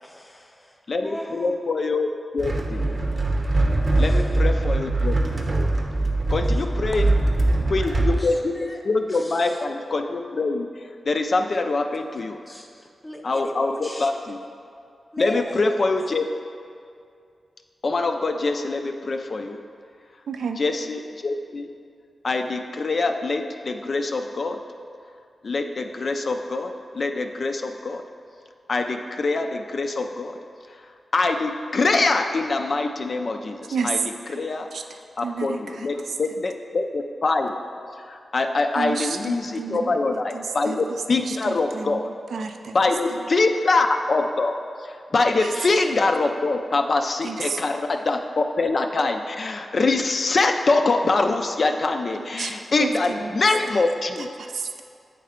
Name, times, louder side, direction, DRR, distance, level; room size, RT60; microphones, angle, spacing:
voice 1, 0.0-1.5 3.9-4.3 6.3-6.4 7.6-8.8 9.1-9.5 12.5-14.1 15.1-15.6, equal, 20° left, 2 dB, 0.7 m, -39 dB
voice 2, 0.9-3.0 4.0-5.2 5.4-5.5 6.3-7.2 7.7-10.7 11.0-12.4 13.2-14.4 15.2-16.3 17.8-19.6 20.6-21.7 22.2-24.6 25.4-28.0 28.7-30.4 31.1-34.0 34.3-34.7 35.2-37.6 38.1-42.1 42.7-44.5 44.8-54.3, left 3 dB, 60° left, 5 dB, 0.3 m, -24 dB
sound 1, 2.4-8.2, right 2 dB, 45° right, 0.7 m, -22 dB
voice 3, 20.3-20.6 33.7-33.9 34.3-34.4 34.7-34.8 35.2-35.9 38.7-40.0 40.3-42.0 42.3-42.8 45.4-45.5 47.2-47.6 52.2-52.5 52.8-53.3 53.7-53.8 54.4-54.8, right 5 dB, 80° right, 6 dB, 0.3 m, -31 dB
8.4 x 3.2 x 3.6 m, 2.3 s
cardioid pair, 55°, 0 cm